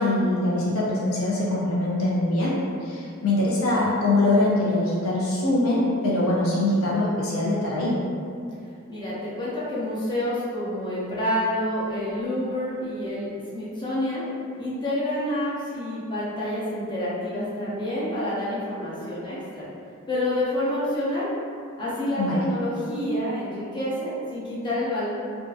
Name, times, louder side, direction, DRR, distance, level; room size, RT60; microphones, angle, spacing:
voice 1, 0.0-2.6 2.8-8.0 22.2-22.4, left 2 dB, 70° left, -6 dB, 0.5 m, -23 dB
voice 2, 8.9-14.2 14.6-19.7 20.1-21.3 21.8-25.1, left 1 dB, 20° left, -9 dB, 0.6 m, -28 dB
2.5 x 2.4 x 2.3 m, 2.4 s
head